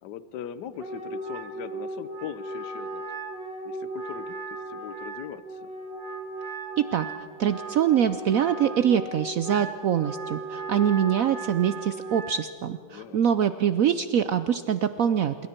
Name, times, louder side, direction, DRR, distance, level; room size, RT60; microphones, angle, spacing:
voice 1, 0.0-3.0 3.6-5.7 12.9-13.5, left 9 dB, 65° left, 14 dB, 1.3 m, -40 dB
Wind instrument woodwind instrument, 0.8-12.4, right 2 dB, 65° right, 2.5 m, -37 dB
voice 2, 6.8-7.1 7.4-15.5, right 9 dB, 80° right, 12 dB, 0.7 m, -24 dB
26.0 x 23.0 x 4.4 m, 2.3 s
omnidirectional pair, 2.2 m